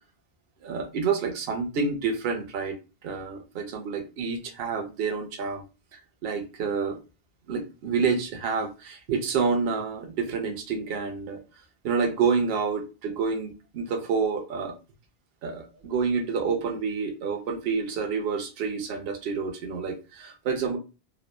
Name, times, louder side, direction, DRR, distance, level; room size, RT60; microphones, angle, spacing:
voice 1, 0.6-2.8 3.0-5.6 5.9-7.0 7.5-11.4 11.8-14.7 15.4-20.8, right 5 dB, 70° right, 4 dB, 0.8 m, -28 dB
2.9 x 2.1 x 2.2 m, 0.31 s
omnidirectional pair, 1.0 m